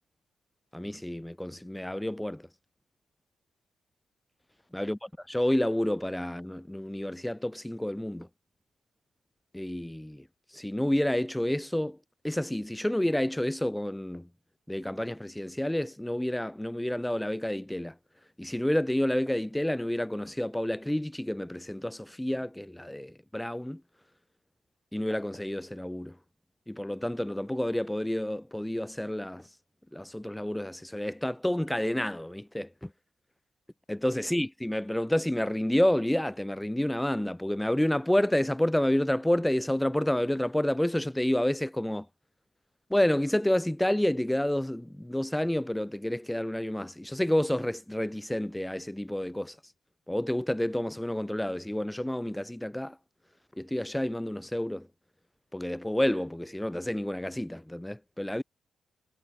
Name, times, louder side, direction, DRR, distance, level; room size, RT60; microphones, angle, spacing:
voice 1, 0.7-2.5 4.7-8.3 9.5-10.3 10.5-12.0 12.2-14.3 14.7-18.0 18.4-23.8 24.9-26.2 26.7-29.5 29.9-32.9 33.9-42.1 42.9-49.6 50.1-53.0 53.6-54.9 55.5-58.4, left 1 dB, 10° left, 2.4 m, -29 dB
hypercardioid pair, 45°, 0 cm